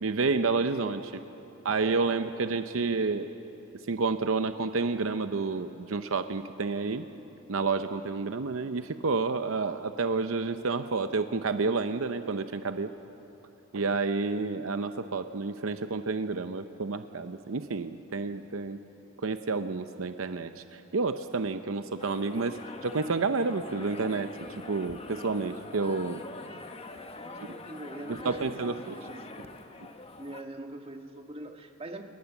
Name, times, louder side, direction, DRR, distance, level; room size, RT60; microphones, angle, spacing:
voice 1, 0.0-1.2 1.6-3.3 3.9-7.1 7.5-12.9 13.7-18.8 19.2-24.4 24.6-26.2 27.4-27.5 28.1-28.9, right 4 dB, 70° right, 9 dB, 0.7 m, -30 dB
sound 1, 22.0-30.4, left 3 dB, 30° left, 1.1 m, -44 dB
voice 2, 27.2-29.2 30.2-32.0, right 1 dB, 30° right, 4 dB, 1.6 m, -43 dB
28.0 x 20.0 x 7.2 m, 3.0 s
head